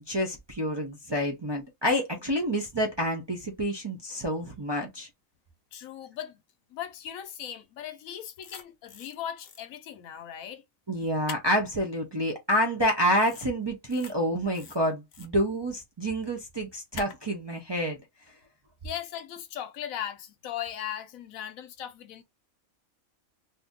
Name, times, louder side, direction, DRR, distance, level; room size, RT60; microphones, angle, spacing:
voice 1, 0.0-5.1 10.9-18.0 18.3-18.4, equal, 35° right, 0.4 m, -28 dB
voice 2, 5.7-6.4 6.7-10.6 18.8-22.2, left 10 dB, 85° left, 1.1 m, -38 dB
sound 1, 8.4-9.1 9.4-9.6 11.3-11.6 13.2-13.5 13.8-14.1 14.5-15.3 16.9-17.2, left 6 dB, 60° left, 0.9 m, -43 dB
2.6 x 2.6 x 3.5 m
omnidirectional pair, 1.4 m